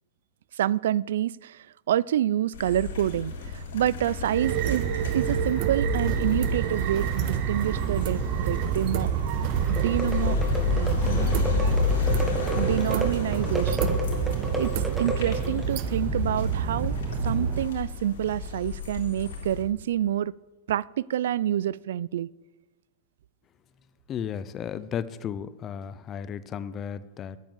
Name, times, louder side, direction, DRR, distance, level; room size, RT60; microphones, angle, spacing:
voice 1, 0.5-4.9 5.1-9.1 9.7-10.4 10.7-11.8 12.5-14.0 14.6-17.0 17.2-20.3 20.7-22.3, right 11 dB, 80° right, 22 dB, 0.3 m, -28 dB
sound 1, 2.5-19.6, left 5 dB, 85° left, 3.8 m, -31 dB
sound 2, 4.3-17.6, right 10 dB, 40° right, 0.6 m, -28 dB
sound 3, 9.7-15.8, right 1 dB, 5° right, 1.6 m, -32 dB
voice 2, 24.1-27.4, left 8 dB, 25° left, 16 dB, 0.5 m, -34 dB
9.8 x 9.2 x 7.4 m, 1.1 s
supercardioid pair, 155°, 0 cm